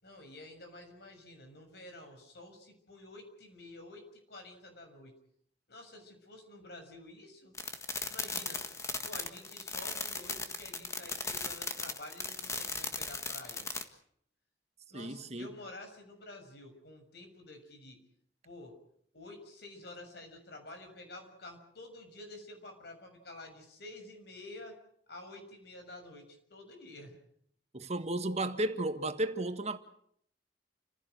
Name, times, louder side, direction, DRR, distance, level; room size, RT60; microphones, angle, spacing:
voice 1, 0.0-5.1 5.7-7.5 8.1-8.7 9.0-13.7 14.9-18.0 18.4-18.8 19.1-24.8 25.1-27.2, left 2 dB, 65° left, 6.6 m, -50 dB
sound 1, 7.5-13.8, left 4 dB, 15° left, 1.7 m, -37 dB
voice 2, 14.9-15.5 27.7-29.8, right 1 dB, 40° right, 1.6 m, -33 dB
30.0 x 16.0 x 7.9 m
head